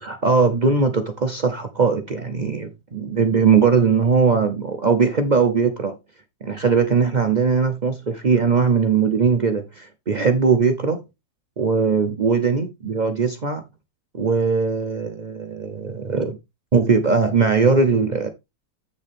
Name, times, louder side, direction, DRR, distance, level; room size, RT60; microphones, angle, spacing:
voice 1, 0.0-6.0 6.4-11.0 11.6-13.6 14.1-16.4 16.7-18.3, right 5 dB, 90° right, 0.4 m, -20 dB
8.1 x 6.5 x 3.4 m
omnidirectional pair, 2.0 m